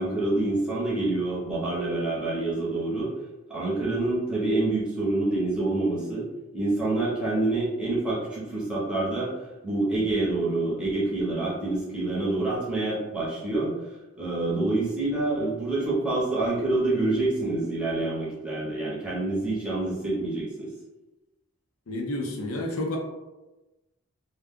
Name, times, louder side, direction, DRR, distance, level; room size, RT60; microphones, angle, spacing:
voice 1, 0.0-3.1 3.5-6.3 6.5-9.3 9.6-13.7 14.2-20.7, right 2 dB, 5° right, -8 dB, 0.8 m, -27 dB
voice 2, 21.9-23.0, left 1 dB, 75° left, 0 dB, 0.6 m, -30 dB
2.3 x 2.2 x 3.5 m, 1.1 s
head